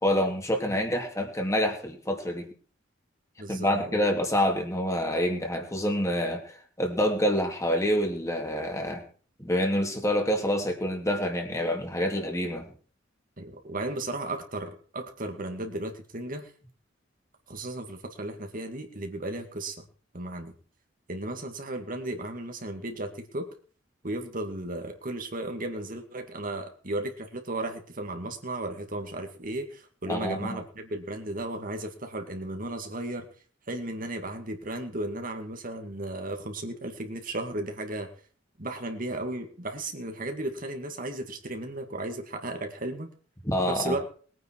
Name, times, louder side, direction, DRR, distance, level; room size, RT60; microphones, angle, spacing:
voice 1, 0.0-2.5 3.5-9.1 9.4-12.6 30.1-30.6 43.4-44.0, equal, 15° left, 3 dB, 2.7 m, -27 dB
voice 2, 3.4-3.9 13.4-16.5 17.5-19.8 20.1-20.5 21.1-23.5 24.0-33.3 33.7-38.1 38.6-43.1 43.7-44.1, right 2 dB, 45° right, 5 dB, 2.1 m, -35 dB
21.0 x 9.6 x 4.6 m, 0.43 s
head